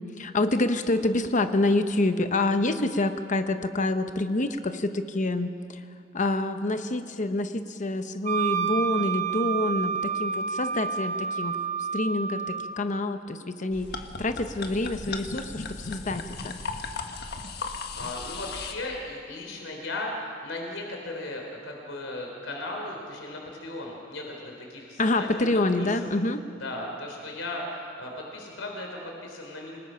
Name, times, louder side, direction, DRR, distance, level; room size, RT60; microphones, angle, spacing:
voice 1, 0.2-5.8 6.1-11.6 11.9-13.9 14.2-16.5 25.0-26.4, left 2 dB, 40° left, 9 dB, 0.9 m, -27 dB
Wind instrument woodwind instrument, 8.3-12.7, right 6 dB, 40° right, 1.1 m, -29 dB
sound 1, 13.7-18.7, left 3 dB, 55° left, 1.6 m, -36 dB
voice 2, 18.0-25.5 25.8-26.2 26.6-29.8, left 2 dB, 90° left, 1 dB, 3.7 m, -36 dB
27.0 x 20.0 x 5.7 m, 2.4 s
head